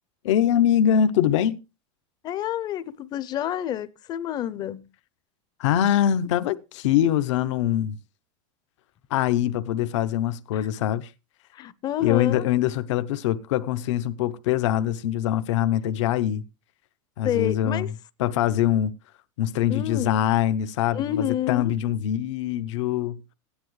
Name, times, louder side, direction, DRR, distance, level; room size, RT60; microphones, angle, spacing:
voice 1, 0.2-1.6 5.6-8.0 9.1-11.1 12.0-16.4 17.2-17.9 18.2-18.9 19.4-23.2, left 10 dB, 75° left, 0.9 m, -23 dB
voice 2, 2.2-4.9 10.5-10.7 11.5-12.5 17.2-17.9 19.7-20.2 20.9-21.7, left 11 dB, 25° left, 0.6 m, -29 dB
16.0 x 10.0 x 3.2 m
supercardioid pair, 155°, 16 cm